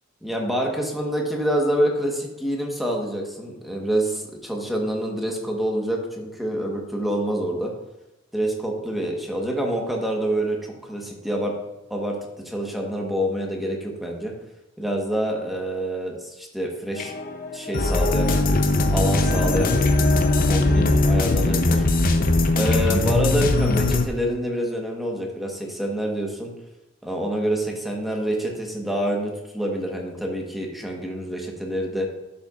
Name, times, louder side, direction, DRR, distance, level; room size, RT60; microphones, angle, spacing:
voice 1, 0.2-7.7 8.3-11.5 11.9-14.3 14.8-17.1 17.5-18.6 18.9-20.0 20.5-21.8 22.6-26.5 27.0-32.1, right 1 dB, ahead, 0 dB, 1.2 m, -27 dB
sound 1, 17.0-24.1, left 2 dB, 45° left, 0.7 m, -20 dB
11.5 x 6.8 x 2.5 m, 0.98 s
head